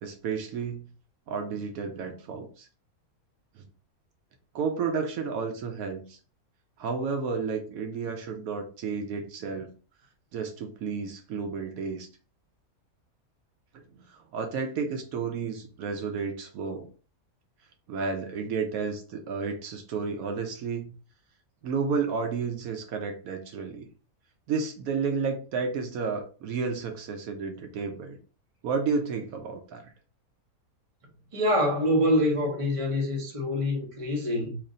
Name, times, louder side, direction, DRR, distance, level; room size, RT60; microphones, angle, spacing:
voice 1, 0.0-0.9 1.3-2.7 3.6-3.7 4.5-6.2 6.8-9.7 10.3-12.1 14.1-16.9 17.9-20.9 21.6-23.9 24.5-28.2 28.6-29.9, right 5 dB, 75° right, 1.0 m, -31 dB
voice 2, 31.3-34.6, left 1 dB, 25° right, 0.9 m, -25 dB
3.1 x 2.5 x 3.7 m
omnidirectional pair, 1.5 m